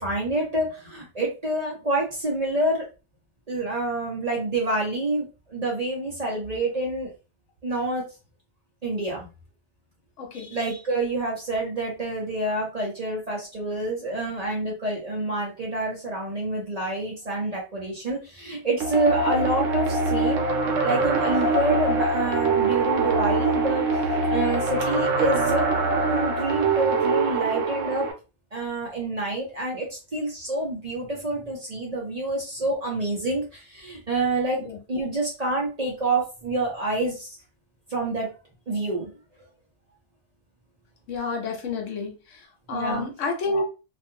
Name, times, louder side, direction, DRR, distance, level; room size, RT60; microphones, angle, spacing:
voice 1, 0.0-2.8 3.5-7.1 7.6-8.1 8.8-9.3 10.3-23.9 24.3-25.6 26.1-28.1 28.5-34.6 34.9-37.4 37.9-38.3 38.7-39.1 42.7-43.1, right 2 dB, 40° right, -2 dB, 0.7 m, -27 dB
voice 2, 10.2-10.5 34.6-34.8 41.1-42.1 42.7-43.6, left 3 dB, 75° left, 2 dB, 1.1 m, -29 dB
sound 1, 18.8-28.1, right 3 dB, 85° right, 1.0 m, -24 dB
2.5 x 2.3 x 2.7 m, 0.31 s
omnidirectional pair, 1.3 m